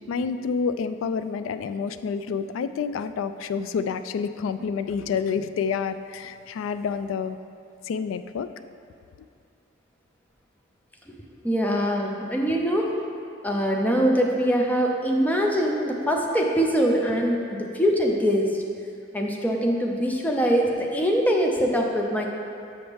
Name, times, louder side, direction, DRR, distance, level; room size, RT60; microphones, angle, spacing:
voice 1, 0.1-7.4 7.9-8.5, left 6 dB, 75° left, 12 dB, 0.3 m, -28 dB
voice 2, 11.4-12.9 13.4-18.6 19.1-22.3, equal, 10° left, 0 dB, 0.6 m, -23 dB
7.0 x 6.2 x 3.5 m, 2.4 s
head